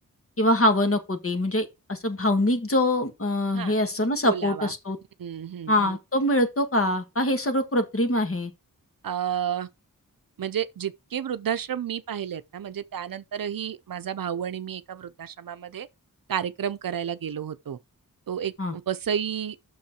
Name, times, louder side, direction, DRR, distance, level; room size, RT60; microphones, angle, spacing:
voice 1, 0.4-5.0 5.7-8.5 18.6-18.8, left 1 dB, 40° left, 1.6 m, -24 dB
voice 2, 4.2-4.7 5.2-6.0 9.0-9.7 10.4-15.9 16.3-17.8 18.3-19.6, right 9 dB, 75° right, 0.6 m, -31 dB
6.4 x 5.7 x 5.8 m
wide cardioid pair, 70°, 34 cm